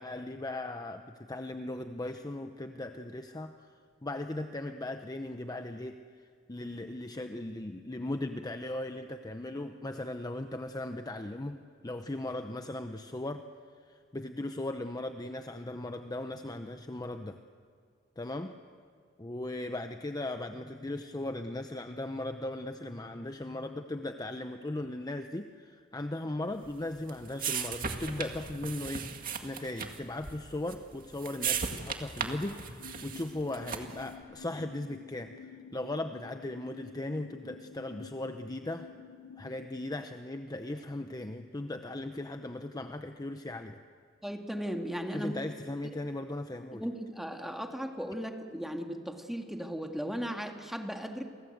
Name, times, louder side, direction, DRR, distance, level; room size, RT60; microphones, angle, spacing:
voice 1, 0.0-3.7 4.0-6.0 6.5-13.5 13.9-17.4 18.2-18.6 19.2-35.4 35.7-38.9 39.4-43.8 45.1-46.9, left 1 dB, 20° left, 7 dB, 0.8 m, -38 dB
sound 1, 26.6-34.1, right 6 dB, 45° right, 2.2 m, -37 dB
sound 2, 32.8-39.7, left 6 dB, 45° left, 0.9 m, -50 dB
voice 2, 44.2-45.3 46.7-51.2, equal, ahead, 3 dB, 2.1 m, -36 dB
30.0 x 24.0 x 8.0 m, 2.1 s
head